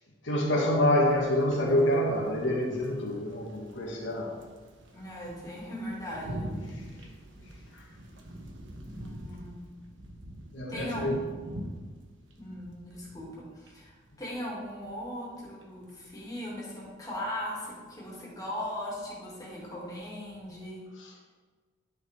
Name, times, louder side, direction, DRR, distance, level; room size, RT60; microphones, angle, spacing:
voice 1, 0.2-4.4 7.7-7.8 10.5-11.2 21.0-21.1, left 1 dB, 75° left, 1.8 m, -27 dB
sound 1, 1.0-20.7, equal, 75° right, 1.2 m, -45 dB
voice 2, 4.9-6.5 8.8-9.7 10.7-11.7 12.4-20.8, left 1 dB, 20° left, 2.6 m, -39 dB
11.0 x 6.4 x 3.7 m
head